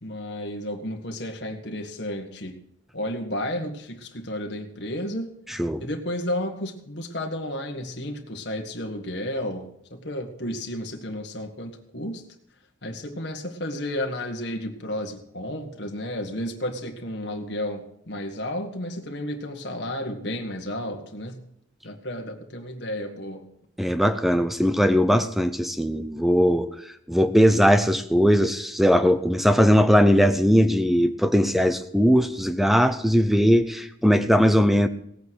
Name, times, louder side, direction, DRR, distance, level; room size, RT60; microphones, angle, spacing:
voice 1, 0.0-2.6 2.9-5.4 5.8-12.2 12.8-21.4 21.8-23.4, left 1 dB, 55° left, 2 dB, 1.7 m, -32 dB
voice 2, 23.8-26.7 27.1-34.9, equal, ahead, 10 dB, 0.7 m, -19 dB
17.5 x 8.6 x 6.4 m, 0.74 s
head